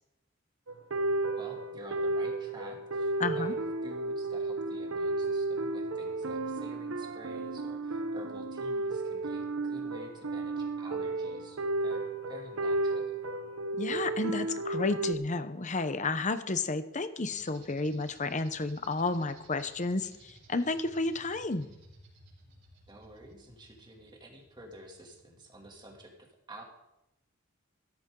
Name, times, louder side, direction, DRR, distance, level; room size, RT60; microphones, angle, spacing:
sound 1, 0.7-15.1, right 2 dB, 75° right, 0.9 m, -33 dB
voice 1, 1.4-13.2 22.9-26.6, right 1 dB, 20° right, 0 dB, 2.7 m, -50 dB
voice 2, 3.2-3.5 13.8-21.7, left 3 dB, 35° left, 11 dB, 0.9 m, -31 dB
sound 2, 17.2-26.0, right 2 dB, 55° right, 4.9 m, -58 dB
15.5 x 14.0 x 3.9 m, 0.89 s
head